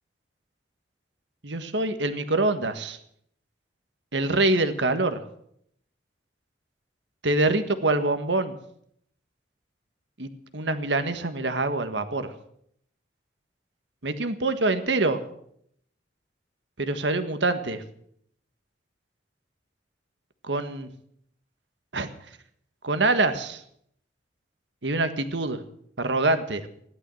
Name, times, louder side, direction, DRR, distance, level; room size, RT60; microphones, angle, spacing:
voice 1, 1.4-3.0 4.1-5.2 7.2-8.5 10.2-12.3 14.0-15.2 16.8-17.8 20.4-20.9 21.9-22.1 22.8-23.6 24.8-25.6 26.0-26.7, right 2 dB, 80° right, 9 dB, 1.5 m, -25 dB
16.0 x 11.5 x 7.7 m, 0.70 s
head